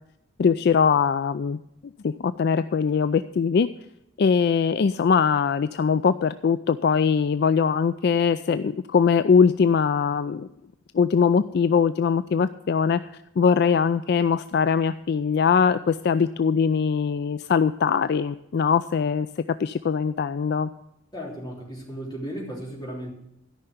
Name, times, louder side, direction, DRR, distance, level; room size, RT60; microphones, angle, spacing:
voice 1, 0.4-1.6 2.0-3.7 4.2-10.5 10.9-13.0 13.4-19.3 19.6-20.7, left 6 dB, 55° left, 12 dB, 0.3 m, -21 dB
voice 2, 21.1-23.1, equal, 20° left, -3 dB, 3.3 m, -35 dB
13.5 x 5.7 x 9.4 m, 0.84 s
head